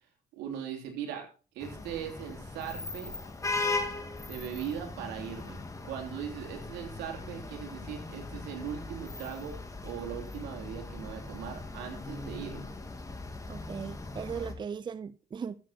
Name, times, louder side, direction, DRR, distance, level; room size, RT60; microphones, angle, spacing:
voice 1, 0.3-1.2 1.5-3.1 4.3-9.6 9.8-12.7, right 9 dB, 90° right, 2 dB, 3.4 m, -39 dB
sound 1, 1.6-14.5, left 3 dB, 20° left, 2.2 m, -39 dB
voice 2, 13.5-15.6, right 6 dB, 25° right, 16 dB, 0.5 m, -38 dB
13.5 x 7.7 x 4.3 m, 0.37 s
cardioid pair, 110°, 17 cm